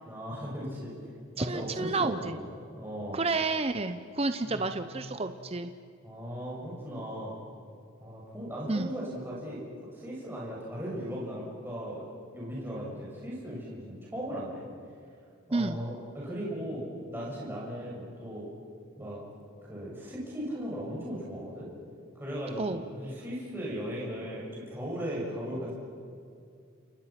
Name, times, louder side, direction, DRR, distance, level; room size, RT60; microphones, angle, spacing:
voice 1, 0.0-1.0 1.4-3.2 4.4-5.0 6.0-7.4 8.0-9.6 9.9-14.7 15.5-18.5 19.0-19.2 19.7-21.7 22.1-25.7, equal, 10° right, -6 dB, 6.8 m, -37 dB
voice 2, 1.4-2.4 3.1-5.7 8.7-8.9 15.5-15.8 22.6-22.8, right 3 dB, 30° right, 9 dB, 0.7 m, -30 dB
29.5 x 28.5 x 6.0 m, 2.3 s
head